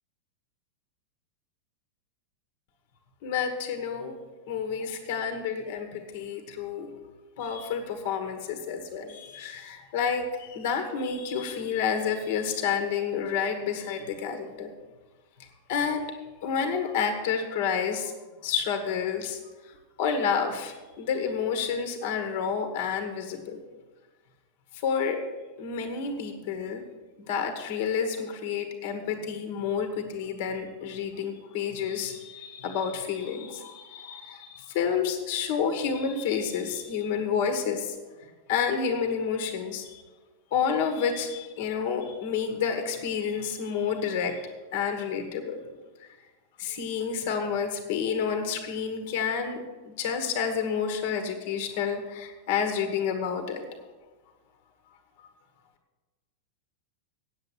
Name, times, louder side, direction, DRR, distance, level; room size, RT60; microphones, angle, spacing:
voice 1, 3.2-4.2 4.5-6.9 7.4-14.7 15.7-16.1 16.4-18.1 18.4-23.6 24.7-25.2 25.6-26.8 27.2-40.0 40.5-45.6 46.0-46.1 46.6-53.6, left 6 dB, 50° left, 5 dB, 1.4 m, -30 dB
9.3 x 7.9 x 7.8 m, 1.3 s
figure-of-eight pair, 90°, 0 cm